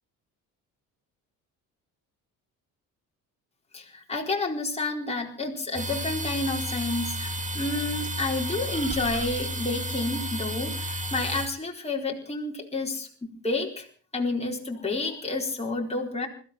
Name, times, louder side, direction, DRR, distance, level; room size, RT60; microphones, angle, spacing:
voice 1, 3.7-7.3 7.5-13.9 14.1-16.3, left 2 dB, 15° left, 0 dB, 4.4 m, -30 dB
sound 1, 5.7-11.5, equal, 20° right, 2.4 m, -32 dB
21.0 x 15.0 x 4.5 m, 0.40 s
supercardioid pair, 65°, 36 cm